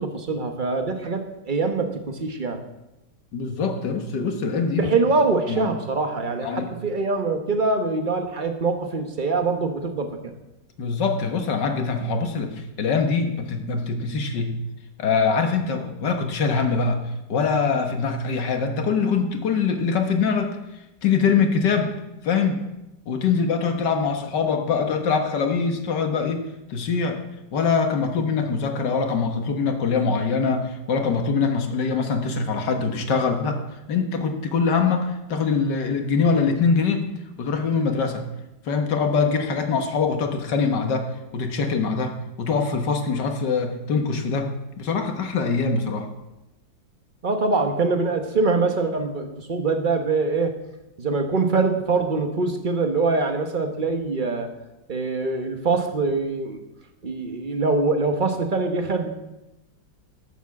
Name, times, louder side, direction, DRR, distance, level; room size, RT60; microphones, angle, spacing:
voice 1, 0.0-2.6 4.8-10.3 47.2-50.6 51.0-54.5 54.9-56.6 57.0-59.1, right 3 dB, 30° right, 5 dB, 1.0 m, -24 dB
voice 2, 3.3-4.9 5.5-5.7 6.4-6.7 10.8-14.6 15.0-17.0 17.3-20.6 21.0-22.0 22.2-22.6 23.1-27.2 27.5-33.6 33.9-37.1 37.4-38.2 38.7-46.1, left 5 dB, 65° left, 5 dB, 1.9 m, -23 dB
11.5 x 7.1 x 7.2 m, 0.96 s
omnidirectional pair, 2.0 m